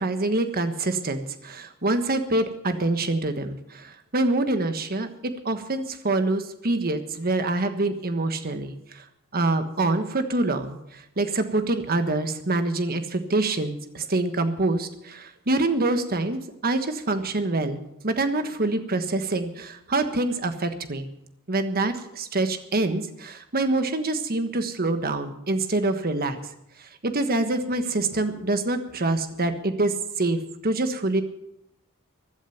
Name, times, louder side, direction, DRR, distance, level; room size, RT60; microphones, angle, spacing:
voice 1, 0.0-8.7 9.3-10.8 11.2-17.8 18.0-21.1 21.5-26.4 27.0-30.4 30.6-31.2, right 2 dB, 45° right, 8 dB, 1.4 m, -25 dB
16.0 x 11.5 x 5.9 m, 0.83 s
head